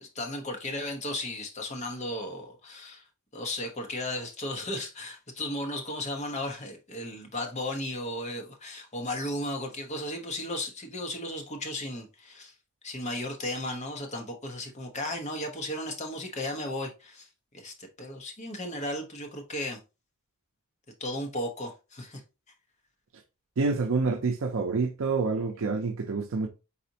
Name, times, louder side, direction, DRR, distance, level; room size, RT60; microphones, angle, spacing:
voice 1, 0.0-3.0 3.3-12.5 12.8-17.3 17.5-19.8 21.0-22.2, left 1 dB, 35° left, 1.0 m, -35 dB
voice 2, 23.6-26.5, right 4 dB, 65° right, 0.5 m, -27 dB
4.2 x 4.2 x 2.8 m
head